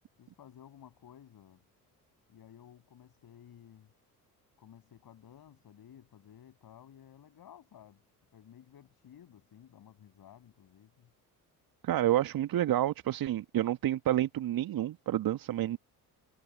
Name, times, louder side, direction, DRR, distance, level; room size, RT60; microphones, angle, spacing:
voice 1, 0.2-1.6 2.3-3.9 4.6-8.0 8.3-11.1, left 10 dB, 45° left, 6.9 m, -55 dB
voice 2, 11.8-15.8, right 13 dB, 45° right, 1.6 m, -29 dB
figure-of-eight pair, 50°, 48 cm